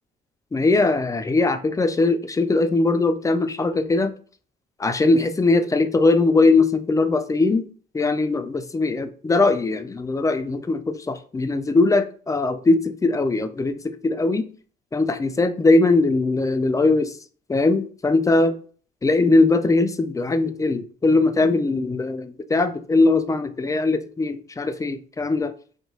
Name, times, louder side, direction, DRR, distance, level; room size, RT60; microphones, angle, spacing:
voice 1, 0.5-4.1 4.8-7.7 7.9-14.5 14.9-17.1 17.5-18.6 19.0-25.5, left 3 dB, 15° left, 9 dB, 0.3 m, -20 dB
2.8 x 2.2 x 4.1 m, 0.42 s
cardioid pair, 100°, 19 cm